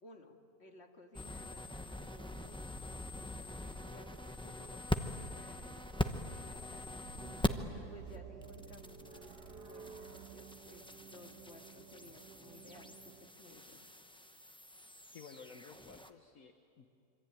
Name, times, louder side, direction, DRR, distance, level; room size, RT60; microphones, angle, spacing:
voice 1, 0.0-2.7 3.1-7.0 7.7-13.8, left 2 dB, 40° left, 3 dB, 2.3 m, -58 dB
sound 1, 1.1-7.8 8.0-16.1, left 1 dB, 5° left, 0.5 m, -42 dB
sound 2, 7.0-13.3, right 7 dB, 75° right, 1.8 m, -52 dB
voice 2, 15.1-16.9, left 5 dB, 60° left, 6 dB, 1.5 m, -54 dB
26.0 x 24.5 x 9.1 m, 2.6 s
omnidirectional pair, 1.8 m